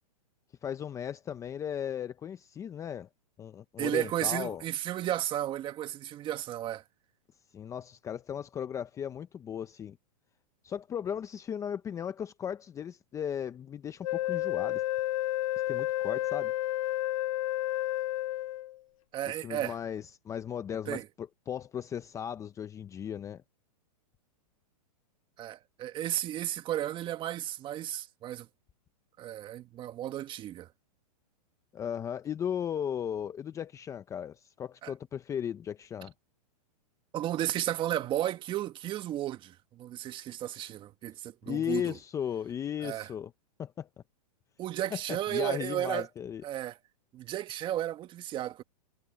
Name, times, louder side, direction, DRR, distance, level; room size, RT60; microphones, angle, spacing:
voice 1, 0.6-3.1 3.4-4.6 7.5-10.0 10.6-14.8 15.7-16.5 19.3-23.4 31.7-36.1 41.5-43.3 43.6-43.9 45.1-46.4, left 8 dB, 15° left, 0.7 m, -36 dB
voice 2, 3.8-6.8 19.1-19.8 20.9-21.1 25.4-28.5 29.2-30.7 34.8-34.9 37.1-42.0 42.8-43.1 44.6-46.1 46.4-46.8 47.1-48.6, right 12 dB, 25° right, 1.7 m, -33 dB
Wind instrument woodwind instrument, 14.0-18.8, left 15 dB, 55° left, 0.5 m, -31 dB
hypercardioid pair, 145°, 20 cm